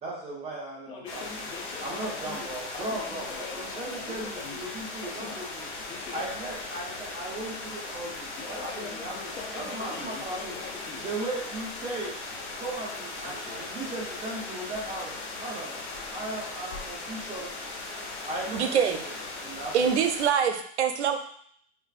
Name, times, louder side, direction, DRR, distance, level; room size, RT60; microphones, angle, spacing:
voice 1, 0.0-1.3 1.8-5.7 6.1-9.1 9.5-10.5 11.0-12.1 12.6-15.8 16.1-17.5 18.2-18.9 19.4-19.9, right 2 dB, 20° right, -4 dB, 0.8 m, -37 dB
voice 2, 0.9-4.6 5.0-5.4 5.8-6.2 8.4-11.1 13.2-13.6, left 5 dB, 15° left, -1 dB, 0.5 m, -43 dB
sound 1, 1.1-20.3, left 3 dB, 65° left, 1.0 m, -38 dB
voice 3, 18.5-19.0 19.7-21.2, right 7 dB, 90° right, 7 dB, 0.6 m, -24 dB
4.4 x 2.5 x 2.4 m, 0.64 s
hypercardioid pair, 140°, 33 cm